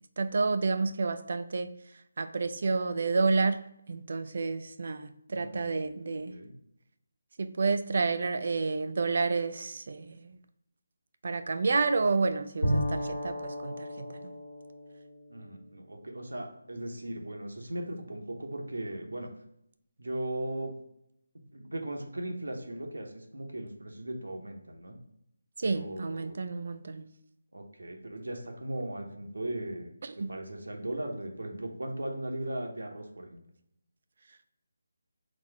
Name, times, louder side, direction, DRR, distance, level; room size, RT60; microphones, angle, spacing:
voice 1, 0.2-1.7 2.2-3.6 3.9-6.3 7.4-10.4 11.2-14.3 25.6-27.1 30.0-30.3, right 4 dB, 55° right, 10 dB, 0.4 m, -30 dB
voice 2, 5.3-6.5 15.3-19.3 20.0-20.7 21.5-25.0 25.6-26.4 27.5-29.9 30.3-33.4, right 1 dB, 85° right, 2 dB, 0.8 m, -38 dB
Bowed string instrument, 12.6-16.3, equal, 70° left, 1.3 m, -34 dB
4.1 x 2.5 x 4.5 m, 0.76 s
figure-of-eight pair, 160°, 0 cm